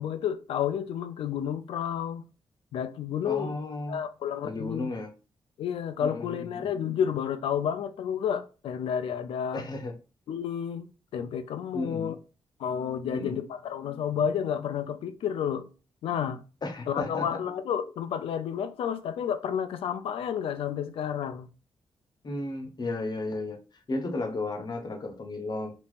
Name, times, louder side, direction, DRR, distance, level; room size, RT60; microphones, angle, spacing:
voice 1, 0.0-2.3 2.7-3.6 3.9-4.9 5.6-9.7 10.3-12.2 12.6-15.7 16.0-16.4 16.9-21.5, left 8 dB, 80° left, 0.4 m, -31 dB
voice 2, 3.2-4.0 4.4-5.1 6.0-6.7 9.5-9.9 11.7-12.1 13.1-13.4 16.6-17.4 22.2-23.6 23.9-25.7, left 2 dB, 50° left, 0.8 m, -34 dB
3.6 x 2.8 x 2.4 m
supercardioid pair, 50°, 9 cm